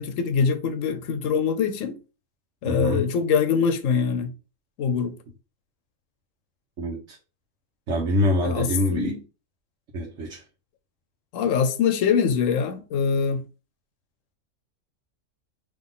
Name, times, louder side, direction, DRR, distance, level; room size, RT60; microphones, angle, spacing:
voice 1, 0.0-2.0 2.6-4.3 4.8-5.2 8.4-9.2 11.3-13.4, left 6 dB, 80° left, 1.0 m, -23 dB
voice 2, 2.7-3.1 6.8-7.2 7.9-9.2 9.9-10.4, left 1 dB, 65° right, 1.2 m, -25 dB
3.9 x 3.0 x 3.7 m
omnidirectional pair, 1.3 m